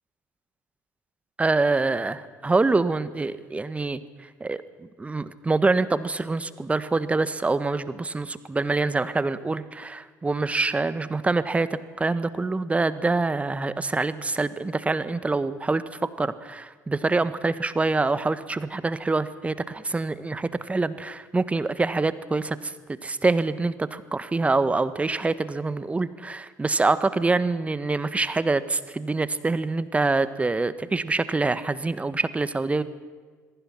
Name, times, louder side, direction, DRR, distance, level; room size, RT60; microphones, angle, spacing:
voice 1, 1.4-32.8, right 3 dB, 15° right, 14 dB, 1.3 m, -25 dB
26.5 x 22.0 x 5.8 m, 1.5 s
figure-of-eight pair, 60°, 9 cm